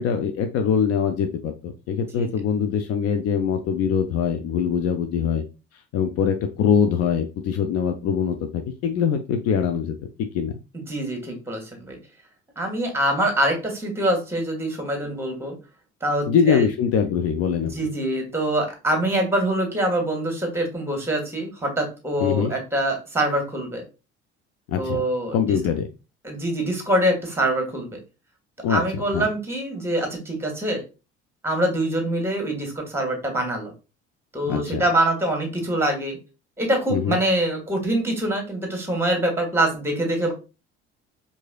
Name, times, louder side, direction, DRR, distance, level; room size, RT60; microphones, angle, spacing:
voice 1, 0.0-5.4 5.9-10.5 16.3-17.9 22.2-22.5 24.7-25.0 25.3-25.9 28.6-29.2 34.4-34.8 36.9-37.2, left 7 dB, 45° left, 6 dB, 0.5 m, -23 dB
voice 2, 10.7-12.0 12.6-15.5 16.0-16.7 17.6-23.8 24.8-25.4 26.2-28.0 28.7-30.8 31.4-33.7 34.3-36.2 36.6-40.3, right 1 dB, 5° right, 3 dB, 1.4 m, -24 dB
4.6 x 2.6 x 2.3 m, 0.30 s
figure-of-eight pair, 55°, 35 cm